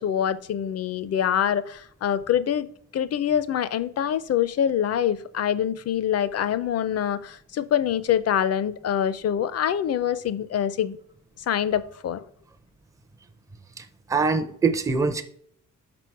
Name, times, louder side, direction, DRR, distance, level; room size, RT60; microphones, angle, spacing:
voice 1, 0.0-11.0 11.5-12.3, left 9 dB, 50° left, 0.5 m, -25 dB
voice 2, 13.8-15.2, right 4 dB, 10° right, 0.5 m, -24 dB
6.1 x 4.8 x 4.6 m
cardioid pair, 145°, 32 cm